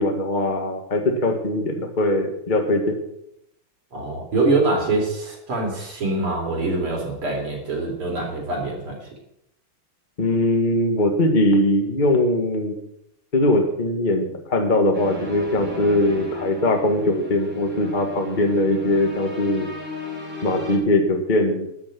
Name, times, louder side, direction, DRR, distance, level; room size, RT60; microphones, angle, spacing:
voice 1, 0.0-3.0 10.2-12.7 13.3-19.7 20.4-21.7, left 1 dB, 25° left, 3 dB, 1.6 m, -21 dB
voice 2, 3.9-9.0, right 2 dB, 75° right, 0 dB, 4.4 m, -24 dB
sound 1, 14.9-20.8, left 1 dB, 5° right, 3.8 m, -36 dB
13.5 x 7.0 x 9.0 m, 0.78 s
omnidirectional pair, 2.4 m